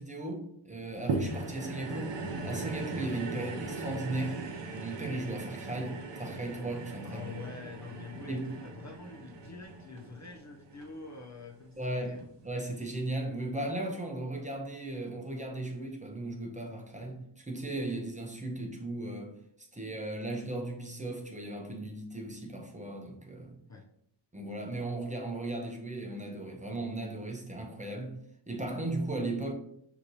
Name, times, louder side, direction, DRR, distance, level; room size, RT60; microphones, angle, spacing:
voice 1, 0.0-2.1 2.4-4.4 4.7-7.4 8.3-8.5 11.8-19.3 19.7-23.6 24.3-28.2 28.5-29.5, right 2 dB, 15° right, 1 dB, 0.6 m, -36 dB
sound 1, 1.1-11.6 12.2-12.3, right 3 dB, 65° right, 0.7 m, -39 dB
voice 2, 7.0-12.2 23.7-23.8, left 4 dB, 40° left, 2 dB, 0.4 m, -46 dB
6.1 x 2.8 x 2.6 m, 0.72 s
wide cardioid pair, 130°, 46 cm